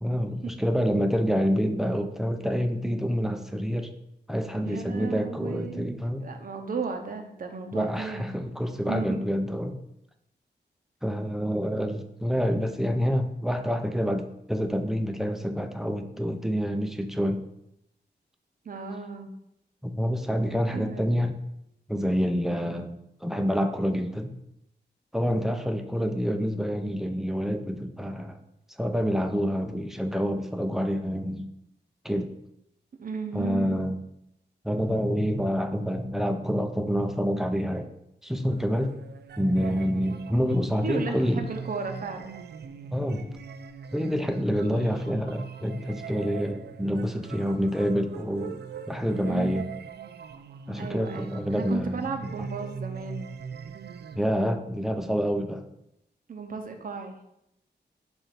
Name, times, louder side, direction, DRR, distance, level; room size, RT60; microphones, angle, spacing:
voice 1, 0.0-3.9 4.3-6.3 7.7-9.8 11.0-17.4 19.8-21.4 21.9-24.3 25.1-28.4 28.8-31.4 32.0-32.3 33.3-34.0 34.6-37.9 38.2-38.9 39.4-41.5 42.9-43.4 43.9-48.6 48.9-49.7 50.7-52.5 54.2-55.6, equal, ahead, 6 dB, 0.6 m, -27 dB
voice 2, 4.6-8.3 8.9-9.2 18.6-19.4 20.7-21.1 33.0-33.9 40.8-42.4 49.2-49.6 50.7-53.3 56.3-57.2, right 4 dB, 50° right, 5 dB, 0.8 m, -35 dB
sound 1, 38.4-54.3, right 6 dB, 65° right, 0.4 m, -41 dB
6.9 x 2.6 x 5.7 m, 0.81 s
wide cardioid pair, 90°, 18 cm